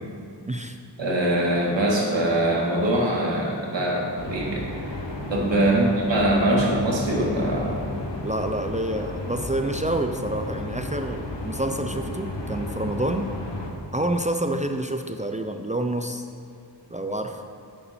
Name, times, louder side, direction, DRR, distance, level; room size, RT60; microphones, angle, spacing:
voice 1, 0.4-0.8 5.7-6.0 8.2-13.3 13.9-16.3 16.9-17.4, right 1 dB, 20° right, 5 dB, 0.4 m, -28 dB
voice 2, 1.0-4.6 5.3-7.8, right 1 dB, 90° right, -3 dB, 1.9 m, -23 dB
sound 1, 4.2-13.7, left 2 dB, 80° left, 1.3 m, -33 dB
11.0 x 6.7 x 4.3 m, 2.5 s
wide cardioid pair, 80°, 43 cm